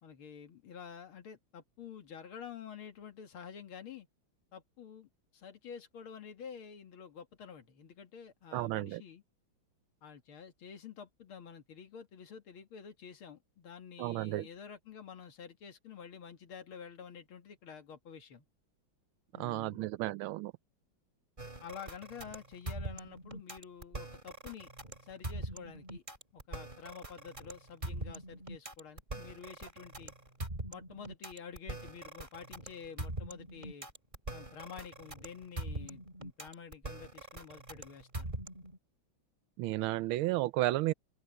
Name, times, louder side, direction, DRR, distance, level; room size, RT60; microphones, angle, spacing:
voice 1, 0.0-4.1 4.5-9.2 10.0-18.4 19.3-19.8 21.6-24.7 25.0-26.0 26.3-30.1 30.7-33.9 34.3-38.3, left 7 dB, 85° left, 2.6 m, -49 dB
voice 2, 8.5-9.0 14.0-14.5 19.4-20.5 39.6-40.9, right 17 dB, 85° right, 1.4 m, -32 dB
sound 1, 21.4-38.8, right 1 dB, 20° right, 3.5 m, -43 dB
open air
omnidirectional pair, 2.3 m